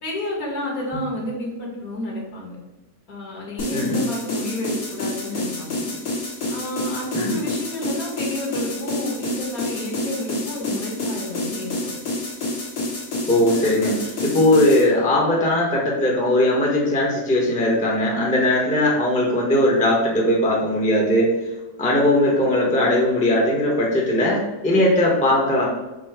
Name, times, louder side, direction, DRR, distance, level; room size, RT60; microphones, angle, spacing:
voice 1, 0.0-2.6 3.1-5.9 6.5-11.9, left 1 dB, 65° left, -2 dB, 1.6 m, -30 dB
sound 1, 3.6-14.8, left 2 dB, 85° left, 1.9 m, -28 dB
voice 2, 3.7-4.0 7.1-7.4 13.3-21.3 21.8-25.7, left 1 dB, 5° left, -3 dB, 0.6 m, -19 dB
5.2 x 2.0 x 4.7 m, 1.1 s
omnidirectional pair, 1.7 m